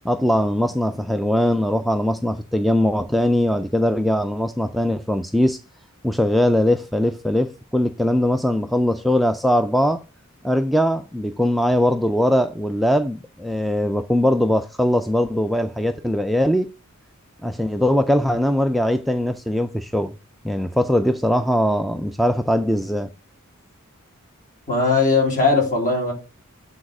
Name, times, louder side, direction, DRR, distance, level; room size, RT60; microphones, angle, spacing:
voice 1, 0.0-5.6 6.0-10.0 10.4-16.7 17.4-20.1 20.4-23.1, left 1 dB, ahead, 0.3 m, -21 dB
voice 2, 24.7-26.1, left 3 dB, 40° left, 3.3 m, -19 dB
8.7 x 4.1 x 4.8 m
head